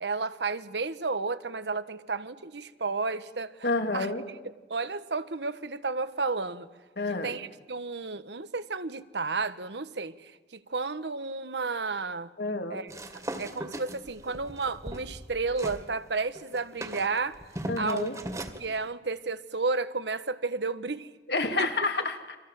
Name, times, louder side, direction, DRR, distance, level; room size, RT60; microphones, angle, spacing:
voice 1, 0.0-4.1 4.7-6.7 7.2-12.3 12.7-17.4 17.8-18.1 18.6-21.1 21.6-21.7, right 4 dB, 85° right, 12 dB, 1.3 m, -32 dB
voice 2, 3.6-4.2 7.0-7.3 12.4-12.8 17.7-18.1 21.3-22.4, left 3 dB, 70° left, 5 dB, 2.9 m, -29 dB
sound 1, 12.9-15.8 16.2-18.6, right 1 dB, 20° right, 2.1 m, -39 dB
30.0 x 25.5 x 7.6 m, 1.2 s
head